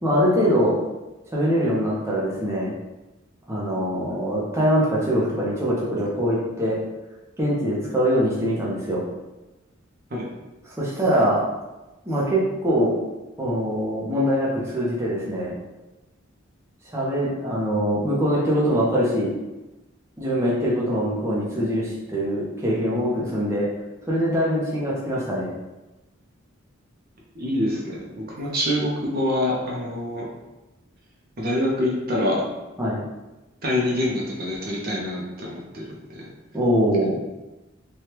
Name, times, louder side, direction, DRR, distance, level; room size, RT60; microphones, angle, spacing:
voice 1, 0.0-0.8 1.3-2.7 3.5-6.8 7.4-9.0 10.7-11.4 12.1-12.9 13.4-15.5 16.9-19.3 20.2-23.7 24.1-25.5 32.8-33.0 36.5-37.2, equal, 15° right, -7 dB, 0.6 m, -23 dB
voice 2, 27.3-30.3 31.4-32.4 33.6-35.8 36.1-36.2, left 1 dB, 50° right, -3 dB, 0.7 m, -25 dB
3.2 x 2.3 x 2.9 m, 1.0 s
head